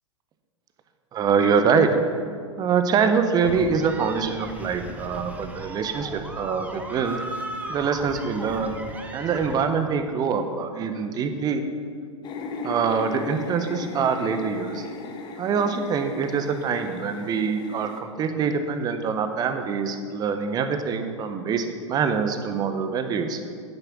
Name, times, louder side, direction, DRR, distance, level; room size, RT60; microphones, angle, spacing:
voice 1, 1.1-1.9 2.6-7.2 7.7-8.8 9.1-11.6 12.6-14.9 15.4-23.4, right 6 dB, 25° right, 8 dB, 1.1 m, -24 dB
sound 1, 3.4-9.7, right 1 dB, 10° right, 1.2 m, -37 dB
sound 2, 12.2-18.0, left 3 dB, 30° left, 1.4 m, -37 dB
10.5 x 9.4 x 6.2 m, 2.1 s
figure-of-eight pair, 100°, 16 cm